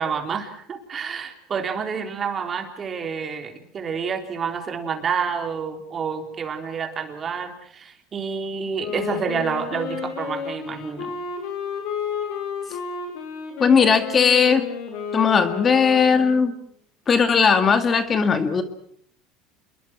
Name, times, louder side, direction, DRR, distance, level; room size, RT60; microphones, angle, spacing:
voice 1, 0.0-11.2, right 6 dB, 30° right, 6 dB, 3.8 m, -29 dB
Wind instrument woodwind instrument, 8.8-16.5, left 6 dB, 65° left, 7.2 m, -32 dB
voice 2, 13.6-14.7 15.1-16.5 17.1-18.6, left 6 dB, 30° left, 9 dB, 2.1 m, -18 dB
28.0 x 22.5 x 6.2 m, 0.62 s
supercardioid pair, 115°, 0 cm